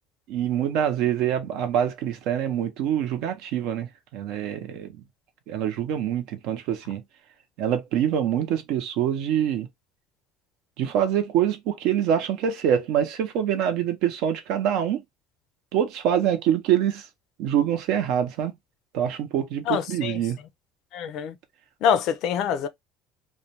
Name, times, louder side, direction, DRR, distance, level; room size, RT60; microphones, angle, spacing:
voice 1, 0.3-5.0 5.5-7.0 7.6-9.7 10.8-15.0 15.7-17.1 17.4-18.5 18.9-20.4, right 9 dB, 70° right, 0.7 m, -25 dB
voice 2, 19.7-20.2 20.9-21.3 21.8-22.7, left 8 dB, 60° left, 0.4 m, -25 dB
2.4 x 2.1 x 2.8 m
cardioid pair, 140°, 0 cm